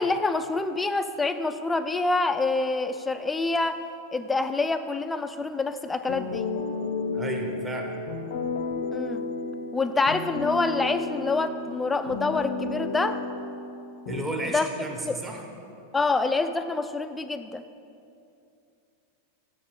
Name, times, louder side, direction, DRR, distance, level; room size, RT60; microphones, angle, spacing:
voice 1, 0.0-3.8 4.1-6.5 8.9-9.2 9.7-13.2 14.5-14.7 15.0-15.2 15.9-17.6, left 3 dB, 10° left, 10 dB, 0.4 m, -26 dB
sound 1, 6.1-14.3, left 3 dB, 55° left, 0.6 m, -32 dB
voice 2, 7.1-8.0 14.1-15.4, right 2 dB, 15° right, 1 dB, 1.3 m, -33 dB
7.3 x 6.7 x 6.9 m, 2.6 s
figure-of-eight pair, 90°, 0 cm